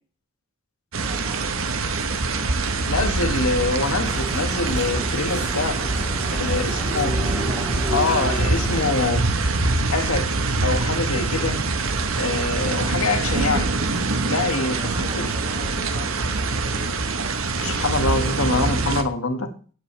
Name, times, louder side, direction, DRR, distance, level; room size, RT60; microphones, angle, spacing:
sound 1, 0.9-19.0, right 3 dB, 70° right, 1.2 m, -24 dB
voice 1, 1.0-2.5 6.0-7.4 14.5-16.9, right 1 dB, 25° right, -1 dB, 4.6 m, -43 dB
voice 2, 2.9-5.8 6.3-7.2 7.9-9.3 9.9-10.3 10.6-11.6 12.2-13.7 14.3-15.3 17.6-19.5, left 3 dB, 85° left, 5 dB, 1.9 m, -25 dB
sound 2, 4.0-9.1, left 1 dB, 5° right, 3.9 m, -33 dB
16.5 x 8.1 x 3.4 m, 0.39 s
head